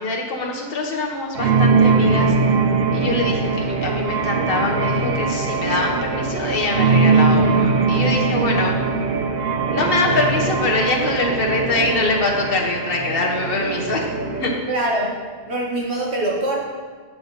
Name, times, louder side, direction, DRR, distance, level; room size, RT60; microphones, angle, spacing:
voice 1, 0.0-2.3 2.9-8.7 9.7-14.1 14.4-14.5, left 2 dB, 60° left, -1 dB, 1.4 m, -23 dB
sound 1, 1.3-14.6, right 4 dB, 65° right, 0.9 m, -20 dB
voice 2, 14.7-16.6, right 1 dB, 80° right, -3 dB, 1.8 m, -24 dB
7.6 x 7.6 x 4.1 m, 1.5 s
omnidirectional pair, 1.1 m